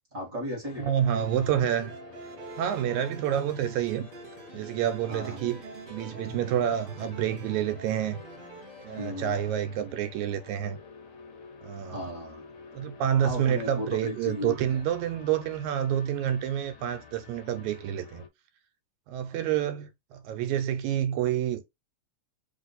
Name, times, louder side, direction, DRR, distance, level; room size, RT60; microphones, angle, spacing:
voice 1, 0.1-0.9 5.1-5.5 9.0-9.4 11.9-12.5 13.2-14.8, left 1 dB, 35° right, 1.4 m, -36 dB
sound 1, 0.6-18.3, left 5 dB, 75° left, 1.2 m, -50 dB
voice 2, 0.8-2.0 2.6-4.1 4.5-5.6 5.9-8.2 8.8-10.8 11.6-12.0 12.7-18.2 19.1-21.6, right 10 dB, 80° right, 1.9 m, -28 dB
sound 2, 1.1-9.1, right 3 dB, 65° right, 1.5 m, -45 dB
4.1 x 3.1 x 3.9 m
omnidirectional pair, 3.4 m